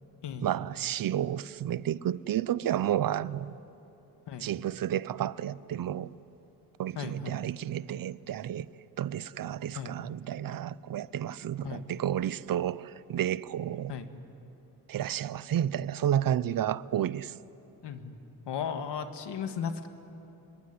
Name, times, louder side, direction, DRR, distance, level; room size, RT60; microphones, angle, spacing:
voice 1, 0.4-3.6 4.4-6.1 6.8-8.7 9.0-13.9 14.9-17.3, right 11 dB, 60° right, 0.6 m, -31 dB
voice 2, 7.0-7.4 9.8-10.0 11.6-11.8 13.9-14.1 17.8-18.1 18.5-19.9, left 7 dB, 90° left, 1.9 m, -36 dB
26.0 x 22.0 x 10.0 m
wide cardioid pair, 170°, 40 cm